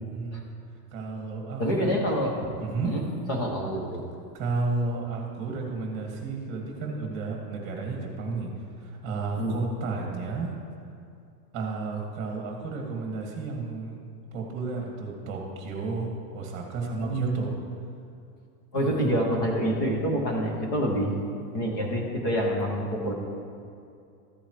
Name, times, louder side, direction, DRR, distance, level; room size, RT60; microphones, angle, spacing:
voice 1, 0.9-1.9 2.6-2.9 4.3-8.5 8.8-10.6 11.5-14.0 14.3-17.6 18.7-19.0, right 3 dB, 25° right, 0 dB, 2.0 m, -32 dB
voice 2, 1.6-2.4 2.8-3.0 3.3-4.0 9.3-9.5 17.0-17.4 18.7-21.1 21.5-23.1, equal, 15° left, 0 dB, 0.4 m, -27 dB
14.5 x 8.7 x 3.2 m, 2.5 s
supercardioid pair, 175°, 49 cm